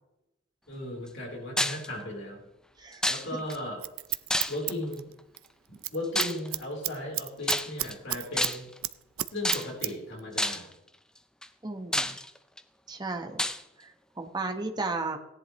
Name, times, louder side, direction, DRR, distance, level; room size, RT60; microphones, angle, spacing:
voice 1, 0.7-2.5 3.1-3.8 4.5-5.1 5.9-8.7 9.3-10.7, left 1 dB, 60° left, -1 dB, 3.9 m, -36 dB
sound 1, 1.6-1.9 3.0-3.5 4.3-4.8 6.1-6.5 7.4-7.9 8.4-8.8 9.4-9.9 10.4-10.7 11.4-11.5 11.9-12.6 13.4-13.6, left 1 dB, 5° left, 0.5 m, -29 dB
Scissors, 3.5-5.5 5.7-6.0 6.2-8.5 8.8-9.9 10.2-10.3, right 16 dB, 85° right, 0.5 m, -32 dB
voice 2, 11.6-12.2 12.9-13.4 13.8-15.2, right 3 dB, 20° right, 4 dB, 1.2 m, -34 dB
17.0 x 11.0 x 3.1 m, 0.91 s
head